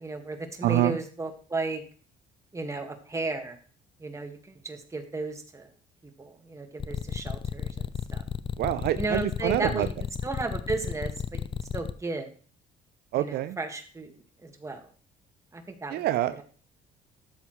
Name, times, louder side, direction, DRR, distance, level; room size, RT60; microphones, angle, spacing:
voice 1, 0.0-1.8 2.5-3.6 4.0-5.7 6.2-8.2 9.0-9.9 10.2-11.5 11.7-12.3 13.2-14.9 15.5-16.0 16.4-16.5, right 3 dB, 15° right, 5 dB, 1.8 m, -34 dB
voice 2, 0.6-1.0 8.6-9.9 13.1-13.6 15.9-16.4, right 14 dB, 70° right, 13 dB, 0.5 m, -26 dB
sound 1, 6.8-11.9, left 8 dB, 30° left, 0.5 m, -32 dB
13.0 x 7.2 x 3.2 m, 0.42 s
cardioid pair, 110°, 17 cm